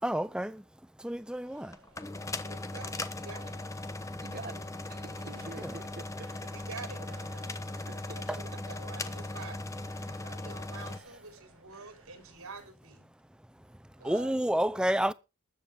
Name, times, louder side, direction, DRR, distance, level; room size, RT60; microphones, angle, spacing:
voice 1, 0.0-0.6 1.0-1.7 5.6-5.8 8.3-8.4 14.0-15.1, right 1 dB, 5° right, 0.6 m, -29 dB
sound 1, 0.9-12.7, right 3 dB, 65° right, 2.0 m, -60 dB
sound 2, 1.7-11.0, left 2 dB, 15° left, 1.0 m, -38 dB
voice 2, 2.5-3.5 5.1-5.5 6.5-7.0 8.1-9.6 10.2-13.1 14.0-14.1, right 4 dB, 90° right, 4.5 m, -47 dB
voice 3, 4.2-6.3 6.7-7.1 7.3-8.4 9.4-9.6 14.0-14.4, right 3 dB, 45° right, 1.1 m, -47 dB
20.5 x 8.0 x 3.6 m
head